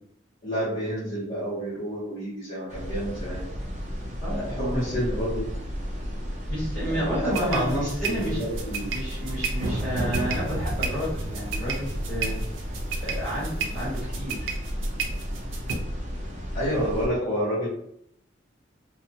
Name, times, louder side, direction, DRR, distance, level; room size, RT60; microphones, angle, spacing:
voice 1, 0.4-3.5 4.3-5.5 6.9-9.0 16.5-17.7, equal, 45° left, -12 dB, 1.1 m, -29 dB
sound 1, 2.7-17.1, equal, 40° right, 0.5 m, -33 dB
voice 2, 4.2-4.9 6.5-8.4 8.9-12.4 13.0-14.5, equal, 5° left, -12 dB, 1.4 m, -31 dB
sound 2, 7.3-15.7, right 4 dB, 85° right, 0.5 m, -32 dB
2.7 x 2.2 x 2.7 m, 0.72 s
head